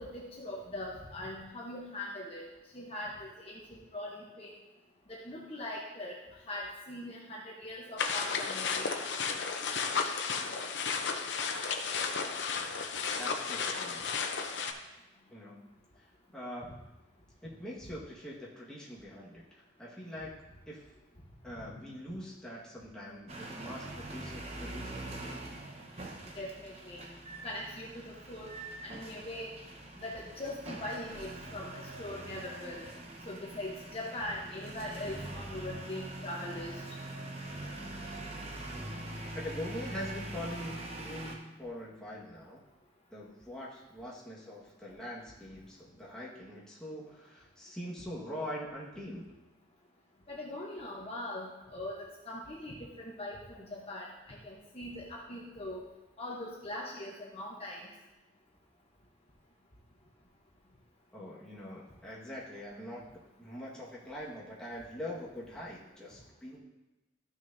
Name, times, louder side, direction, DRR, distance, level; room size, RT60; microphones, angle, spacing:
voice 1, 0.0-2.5 2.7-4.5 5.1-6.1 6.5-8.9 26.3-27.0 27.4-28.5 28.8-29.5 30.0-32.9 33.3-36.8 50.3-55.8 56.2-57.9, left 1 dB, 30° left, -4 dB, 1.0 m, -41 dB
sound 1, 8.0-14.7, left 5 dB, 65° left, 0.7 m, -33 dB
voice 2, 13.2-14.0 15.3-15.6 16.0-16.1 16.3-16.8 17.4-20.3 20.7-20.8 21.4-25.3 39.3-42.6 43.1-49.3 61.1-63.1 63.4-66.6, equal, 5° left, -7 dB, 1.6 m, -43 dB
sound 2, 23.3-41.4, right 1 dB, 35° right, 1.0 m, -43 dB
13.5 x 6.2 x 2.7 m, 1.0 s
head